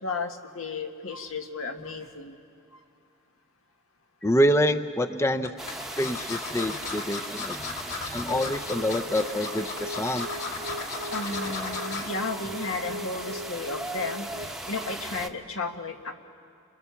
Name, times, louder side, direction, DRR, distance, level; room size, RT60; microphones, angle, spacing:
voice 1, 0.0-2.4 2.7-2.8 11.1-16.1, left 3 dB, 80° left, 4 dB, 1.8 m, -34 dB
sound 1, 4.2-4.7 5.4-12.1 12.5-12.8 13.1-13.2, left 4 dB, 55° left, 2.7 m, -36 dB
voice 2, 4.2-5.5 6.0-7.7 8.1-10.3, equal, 15° left, 8 dB, 0.5 m, -26 dB
sound 2, 5.6-15.3, right 1 dB, ahead, 0.9 m, -38 dB
sound 3, 8.3-14.5, right 1 dB, 85° right, 0.6 m, -40 dB
29.5 x 24.0 x 7.1 m, 2.5 s
head